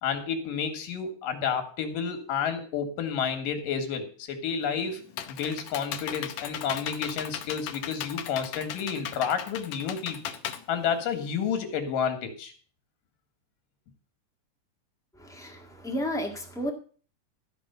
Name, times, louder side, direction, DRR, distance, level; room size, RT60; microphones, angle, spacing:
voice 1, 0.0-10.3 10.7-12.5, left 7 dB, 90° left, 8 dB, 3.4 m, -30 dB
Computer keyboard, 4.6-11.5, left 10 dB, 70° left, 1.9 m, -37 dB
voice 2, 15.2-16.7, equal, 5° left, 1 dB, 0.4 m, -32 dB
14.0 x 5.1 x 8.0 m, 0.42 s
omnidirectional pair, 3.7 m